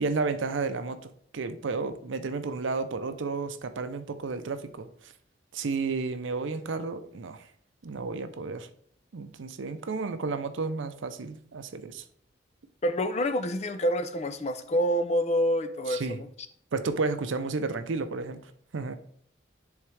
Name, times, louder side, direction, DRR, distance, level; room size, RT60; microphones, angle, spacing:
voice 1, 0.0-5.1 5.5-7.5 7.8-8.7 9.1-12.0 15.9-16.2 16.7-18.4 18.7-19.0, right 4 dB, 80° right, 10 dB, 0.6 m, -32 dB
voice 2, 12.8-16.3, equal, 35° left, 9 dB, 0.5 m, -27 dB
10.5 x 3.6 x 3.3 m, 0.63 s
head